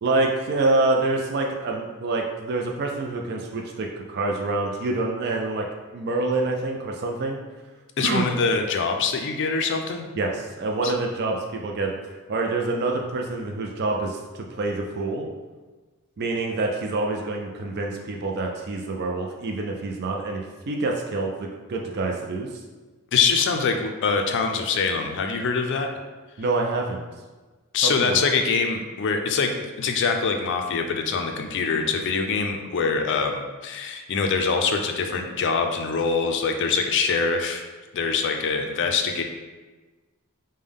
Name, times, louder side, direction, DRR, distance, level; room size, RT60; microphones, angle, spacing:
voice 1, 0.0-5.6 5.9-7.4 8.0-8.3 10.2-11.9 12.3-15.3 16.2-22.5 26.4-27.0 27.8-28.2, right 2 dB, 45° right, 1 dB, 0.4 m, -26 dB
voice 2, 8.0-10.1 10.8-10.9 23.1-25.9 27.7-37.6 37.9-39.2, left 5 dB, 55° left, 5 dB, 0.4 m, -24 dB
5.2 x 2.1 x 3.5 m, 1.3 s
head